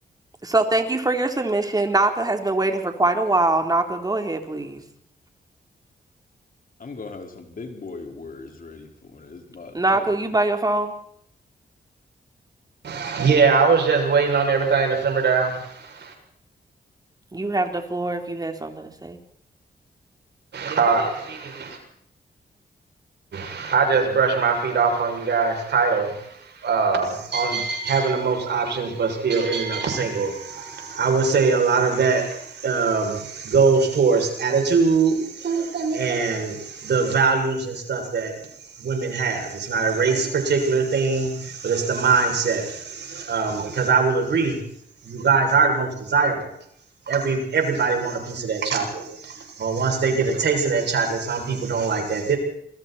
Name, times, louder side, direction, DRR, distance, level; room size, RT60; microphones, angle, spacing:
voice 1, 0.4-4.8 9.7-10.9 17.3-19.2, right 2 dB, 20° right, 5 dB, 3.8 m, -23 dB
voice 2, 6.8-10.1, left 3 dB, 55° left, 4 dB, 5.1 m, -39 dB
voice 3, 12.8-16.1 20.5-21.8 23.3-38.3 38.8-44.6 45.0-46.5 47.1-52.4, right 5 dB, 75° right, 3 dB, 7.2 m, -22 dB
27.5 x 22.0 x 4.5 m, 0.68 s
cardioid pair, 85°, 18 cm